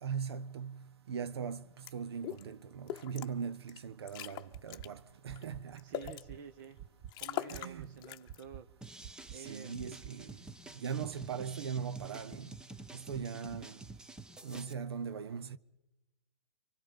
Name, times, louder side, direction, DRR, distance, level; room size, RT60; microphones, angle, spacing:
voice 1, 0.0-6.1 7.5-7.9 9.3-10.4 10.8-12.5 12.9-13.8 14.4-15.6, right 6 dB, 70° right, 0.8 m, -40 dB
sound 1, 1.8-1.9 2.2-2.4 2.9-3.3 3.7-3.8 4.1-4.9 5.4-6.2 6.7-6.8 7.1-7.7 8.0-8.4, left 13 dB, 30° left, 1.0 m, -41 dB
sound 2, 4.5-4.9 5.3-5.6 6.0-6.4 6.8-7.1 7.5-7.9 8.3-8.6 9.0-9.4 9.8-10.1, right 10 dB, 30° right, 0.9 m, -47 dB
voice 2, 5.8-6.8 7.2-8.7 9.3-9.8, right 6 dB, 50° right, 1.3 m, -49 dB
sound 3, 8.8-14.7, right 2 dB, 5° right, 0.7 m, -50 dB
28.0 x 25.0 x 5.4 m
hypercardioid pair, 130°, 14 cm